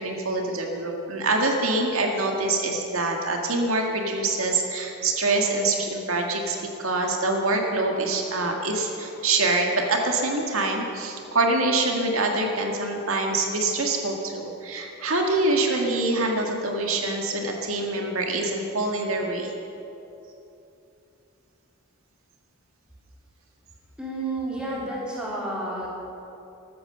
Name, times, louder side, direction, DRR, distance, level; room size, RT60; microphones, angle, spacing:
voice 1, 0.0-19.5, right 2 dB, 85° right, 2 dB, 1.9 m, -25 dB
voice 2, 24.0-25.9, right 2 dB, 5° right, -6 dB, 3.8 m, -30 dB
15.0 x 13.5 x 6.8 m, 2.8 s
head